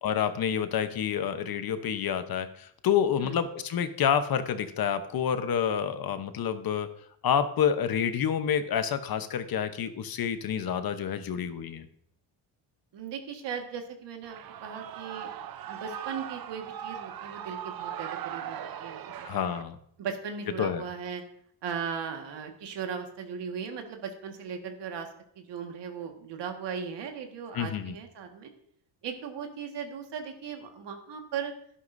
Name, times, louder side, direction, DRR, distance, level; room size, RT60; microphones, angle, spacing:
voice 1, 0.0-6.9 7.2-11.9 19.2-19.8 20.6-20.8 27.5-27.9, left 8 dB, 55° left, 10 dB, 1.0 m, -28 dB
voice 2, 12.9-15.3 15.7-19.3 20.0-21.2 21.6-25.1 25.4-28.5 29.0-31.5, right 6 dB, 75° right, 4 dB, 1.8 m, -37 dB
Shout / Cheering, 14.2-19.6, right 9 dB, 55° right, 0.7 m, -39 dB
11.5 x 11.0 x 2.7 m, 0.68 s
cardioid pair, 95°, 42 cm